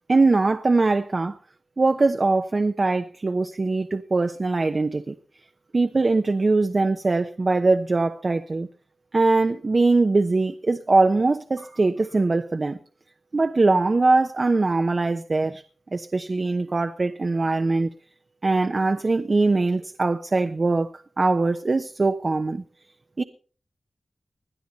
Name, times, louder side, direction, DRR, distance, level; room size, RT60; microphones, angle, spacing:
voice 1, 0.1-1.4 1.8-5.2 5.7-8.7 9.1-12.8 13.3-15.6 15.9-17.9 18.4-20.9 21.2-22.6 23.2-23.3, right 3 dB, 50° right, 0.9 m, -22 dB
21.0 x 11.5 x 4.1 m
cardioid pair, 40°, 0 cm